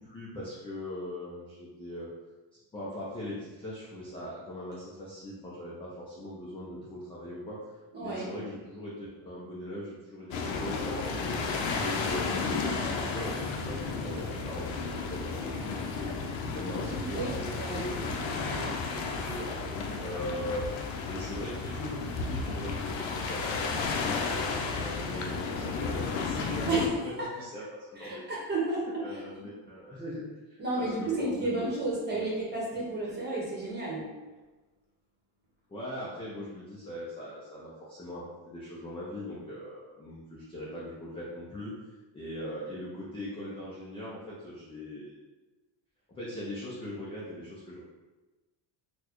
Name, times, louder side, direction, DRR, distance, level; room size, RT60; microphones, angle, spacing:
voice 1, 0.0-2.1 2.7-7.6 8.0-11.5 11.7-20.6 21.1-27.6 28.0-28.2 28.6-28.7 29.0-30.2 30.5-31.7 32.1-32.2 35.7-41.7 42.1-45.2 46.1-47.8, left 1 dB, 15° left, -7 dB, 0.3 m, -40 dB
voice 2, 7.9-8.3 17.0-17.8 26.7-27.3 28.0-29.2 30.6-34.3, right 2 dB, 20° right, -5 dB, 1.0 m, -32 dB
sound 1, 10.3-26.9, left 4 dB, 75° left, 0.6 m, -33 dB
4.1 x 2.2 x 2.9 m, 1.2 s
cardioid pair, 155°, 47 cm